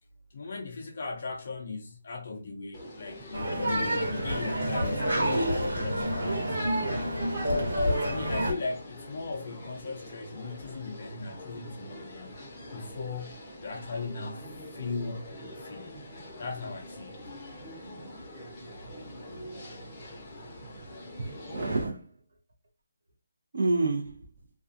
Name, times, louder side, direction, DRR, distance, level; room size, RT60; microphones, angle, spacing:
voice 1, 0.3-5.3 5.7-7.0 7.5-7.7 8.0-12.4 12.7-13.4 13.6-14.4 14.7-16.0 16.4-17.2, left 3 dB, 45° left, 0.5 m, -38 dB
sound 1, 2.7-21.8, left 1 dB, 15° left, 0.8 m, -44 dB
sound 2, 3.3-8.5, equal, 80° right, 1.4 m, -28 dB
voice 2, 20.7-22.1 23.5-24.2, right 2 dB, 55° right, 0.7 m, -30 dB
2.4 x 2.3 x 2.5 m
hypercardioid pair, 170°, 0 cm